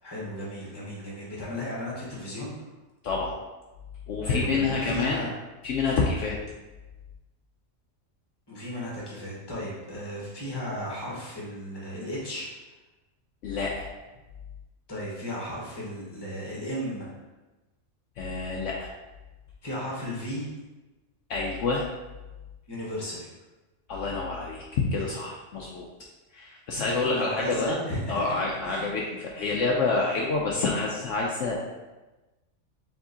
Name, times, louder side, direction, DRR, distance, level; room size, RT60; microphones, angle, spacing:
voice 1, 0.0-2.5 4.3-5.3 8.5-12.5 14.9-17.1 19.6-20.5 22.7-23.3 26.9-28.3 28.6-28.8, equal, 20° left, -5 dB, 1.1 m, -35 dB
voice 2, 4.1-5.3 5.6-6.4 13.4-13.9 18.2-18.9 21.3-21.8 23.9-25.9 26.3-27.8 28.1-31.6, left 3 dB, 70° left, -3 dB, 0.8 m, -27 dB
4.7 x 3.6 x 2.7 m, 1.1 s
omnidirectional pair, 1.4 m